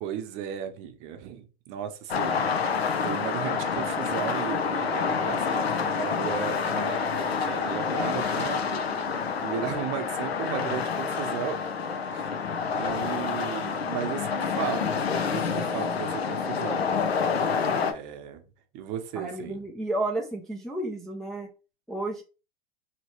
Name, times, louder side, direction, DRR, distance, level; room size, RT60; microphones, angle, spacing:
voice 1, 0.0-2.4 3.0-8.9 9.4-11.6 12.1-16.9 17.7-18.4 18.7-19.6, right 8 dB, 40° right, 0.8 m, -35 dB
sound 1, 2.1-17.9, left 6 dB, 90° left, 0.7 m, -28 dB
voice 2, 19.1-21.5 21.9-22.2, right 2 dB, ahead, 0.4 m, -32 dB
3.0 x 2.9 x 3.0 m
hypercardioid pair, 110°, 30 cm